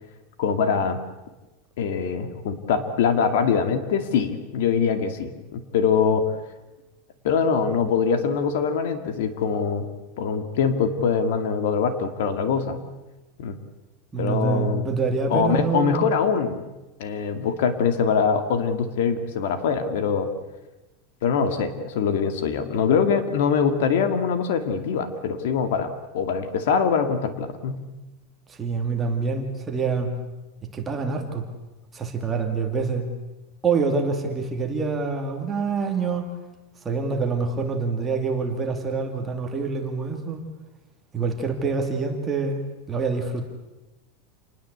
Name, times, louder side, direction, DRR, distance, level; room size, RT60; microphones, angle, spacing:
voice 1, 0.4-1.0 1.8-6.2 7.2-9.9 10.2-12.8 13.4-13.6 14.2-14.8 15.3-16.6 17.0-20.3 21.2-27.8, left 6 dB, 60° left, 9 dB, 2.4 m, -23 dB
voice 2, 14.1-16.0 28.5-30.1 30.7-31.5 31.9-33.1 33.6-36.3 36.8-40.4 41.1-42.6 42.9-43.4, right 4 dB, 15° right, 3 dB, 2.5 m, -26 dB
28.5 x 20.0 x 8.2 m, 1.1 s
supercardioid pair, 180°, 0 cm